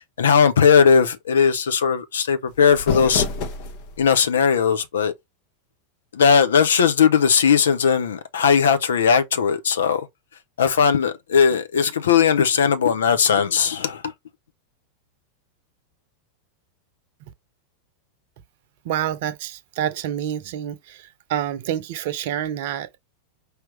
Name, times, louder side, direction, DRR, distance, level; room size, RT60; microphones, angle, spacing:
voice 1, 0.0-3.3 4.0-5.1 6.1-10.1 10.6-14.1, left 6 dB, 65° left, 0.8 m, -18 dB
sound 1, 2.5-4.1, left 5 dB, 45° left, 1.1 m, -28 dB
voice 2, 18.8-23.0, right 10 dB, 50° right, 0.8 m, -28 dB
4.9 x 3.0 x 3.1 m
figure-of-eight pair, 90°, 0 cm